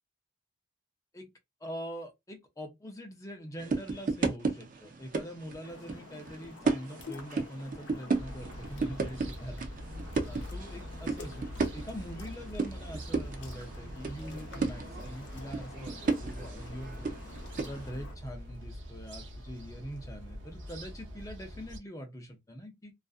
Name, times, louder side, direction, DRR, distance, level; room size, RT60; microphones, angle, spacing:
voice 1, 1.6-9.7 10.3-17.1 17.6-22.9, equal, 20° left, 0.6 m, -43 dB
sound 1, 3.6-17.9, right 4 dB, 45° right, 0.4 m, -35 dB
sound 2, 5.6-18.2, left 4 dB, 80° left, 0.8 m, -50 dB
sound 3, 8.1-21.8, equal, 90° right, 0.7 m, -44 dB
2.5 x 2.4 x 2.4 m
head